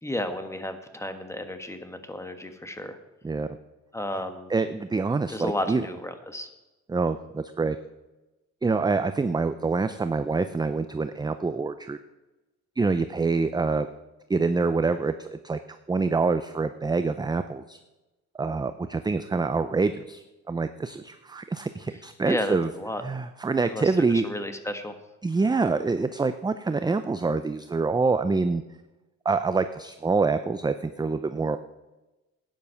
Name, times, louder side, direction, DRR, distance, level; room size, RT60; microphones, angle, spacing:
voice 1, 0.0-3.0 3.9-4.5 5.3-6.5 22.2-23.0 23.6-25.0, left 1 dB, 10° left, 8 dB, 1.4 m, -33 dB
voice 2, 4.5-5.8 6.9-7.8 8.6-12.0 12.8-13.9 14.3-15.6 15.9-17.8 18.4-22.7 23.0-24.2 25.2-28.6 29.2-31.6, right 4 dB, 15° right, 10 dB, 0.5 m, -26 dB
12.0 x 9.6 x 5.8 m, 1.1 s
cardioid pair, 90°, 30 cm